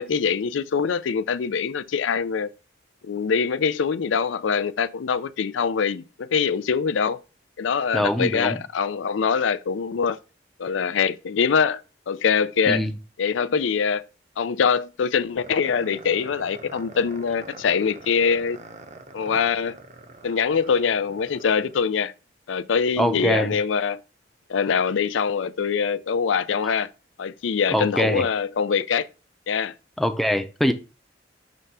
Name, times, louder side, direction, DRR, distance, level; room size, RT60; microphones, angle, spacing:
voice 1, 0.0-2.5 3.0-7.2 7.6-10.2 10.6-12.9 13.2-14.1 14.4-18.6 19.1-19.7 20.2-22.1 22.5-24.0 24.5-26.9 27.2-29.1 29.5-29.7, left 6 dB, 90° left, 0.4 m, -23 dB
voice 2, 7.9-8.6 12.7-12.9 23.0-23.5 27.7-28.3 30.0-30.7, equal, ahead, 0.5 m, -23 dB
sound 1, 15.4-21.9, right 2 dB, 40° right, 0.7 m, -44 dB
6.1 x 3.3 x 5.4 m
head